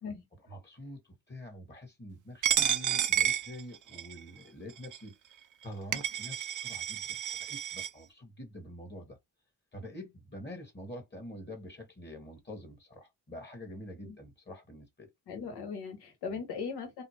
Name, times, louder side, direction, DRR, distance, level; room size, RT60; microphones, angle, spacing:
voice 1, 0.4-5.1 5.6-9.2 9.7-15.1 16.3-16.4, left 1 dB, 25° left, 1.3 m, -46 dB
Coin (dropping), 2.4-4.2 4.8-5.0 5.6-5.7 5.9-7.9, right 10 dB, 50° right, 0.5 m, -30 dB
voice 2, 15.3-17.0, left 5 dB, 80° left, 1.1 m, -39 dB
2.8 x 2.1 x 2.9 m
supercardioid pair, 50°, 39 cm